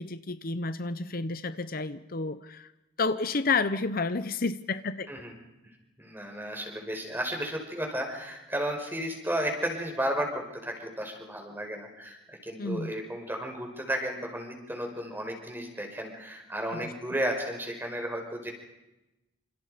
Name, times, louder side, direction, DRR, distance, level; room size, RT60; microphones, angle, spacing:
voice 1, 0.0-2.7 3.0-5.1 12.6-12.9 16.7-16.9, left 3 dB, 50° left, 12 dB, 0.9 m, -30 dB
voice 2, 6.0-18.5, equal, 10° right, 2 dB, 5.7 m, -33 dB
28.5 x 27.5 x 5.2 m, 0.96 s
head